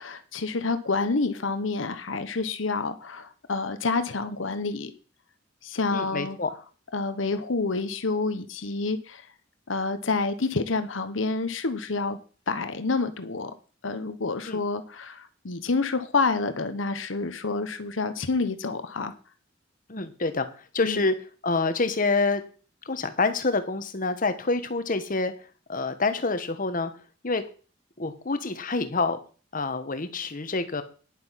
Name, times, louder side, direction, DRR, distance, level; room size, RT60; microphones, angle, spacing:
voice 1, 0.0-4.9 5.6-6.4 6.9-9.2 9.7-12.2 12.5-13.5 13.8-19.1 20.8-21.1, left 3 dB, 85° left, 10 dB, 1.1 m, -28 dB
voice 2, 5.9-6.5 14.5-14.6 19.9-20.5 20.7-21.1 21.4-22.4 22.8-25.3 25.7-26.9 27.2-27.4 28.0-29.2 29.5-30.8, left 3 dB, 45° left, 10 dB, 1.3 m, -27 dB
10.5 x 7.9 x 5.8 m, 0.38 s
head